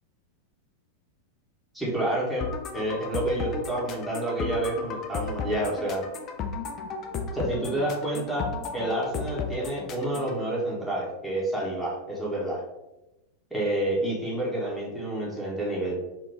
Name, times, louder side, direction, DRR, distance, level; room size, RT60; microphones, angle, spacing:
voice 1, 1.7-2.5 2.7-6.1 7.3-12.6 13.5-16.0, right 1 dB, ahead, -5 dB, 1.2 m, -29 dB
sound 1, 2.4-10.4, left 4 dB, 30° left, 0.5 m, -34 dB
3.7 x 2.4 x 3.3 m, 0.97 s
figure-of-eight pair, 90°, 0 cm